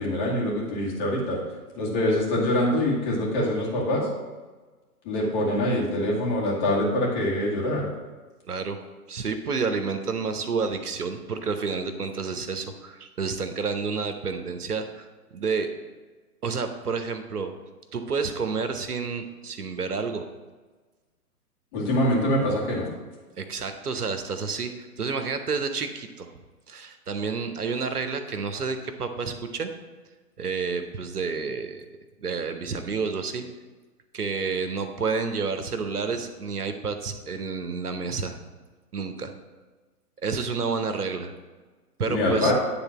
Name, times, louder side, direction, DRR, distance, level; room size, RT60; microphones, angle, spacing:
voice 1, 0.0-1.4 1.8-4.1 5.0-7.8 21.7-22.9 42.0-42.5, left 1 dB, 30° left, -4 dB, 2.2 m, -24 dB
voice 2, 8.5-8.8 9.1-15.1 15.3-15.7 16.4-17.5 17.9-20.2 23.4-26.3 26.7-29.7 30.4-31.9 32.2-33.4 34.1-38.4 38.9-39.3 40.2-41.3 42.0-42.5, right 5 dB, 75° right, 7 dB, 1.0 m, -29 dB
9.7 x 3.6 x 5.9 m, 1.3 s
figure-of-eight pair, 130°, 46 cm